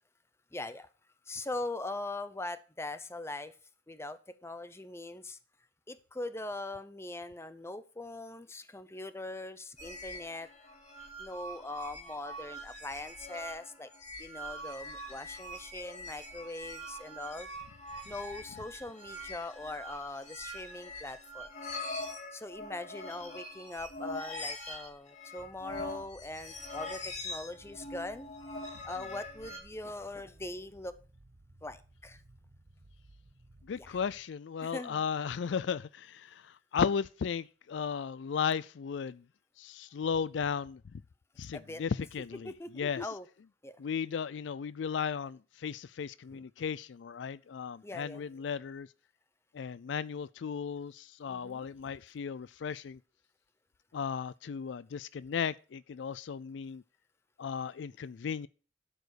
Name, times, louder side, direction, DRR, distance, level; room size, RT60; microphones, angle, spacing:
voice 1, 0.5-0.9 1.3-3.5 3.9-5.4 5.9-10.5 11.2-13.9 14.2-17.5 18.1-21.8 22.3-28.3 28.8-31.0 31.6-32.2 33.7-34.0 34.6-35.0 41.5-41.8 42.4-42.7 43.0-43.3 43.6-43.8 46.3-46.4 47.8-48.3 51.3-51.6, left 2 dB, 15° left, 0.7 m, -41 dB
sound 1, 9.8-29.6, left 1 dB, 40° left, 2.4 m, -43 dB
sound 2, 25.4-34.2, right 1 dB, 50° right, 1.0 m, -59 dB
voice 2, 33.7-36.4 36.7-39.2 39.6-40.8 41.4-43.0 43.8-48.9 49.5-53.0 53.9-56.8 57.4-58.5, left 6 dB, 70° left, 0.4 m, -35 dB
12.0 x 5.0 x 6.4 m
head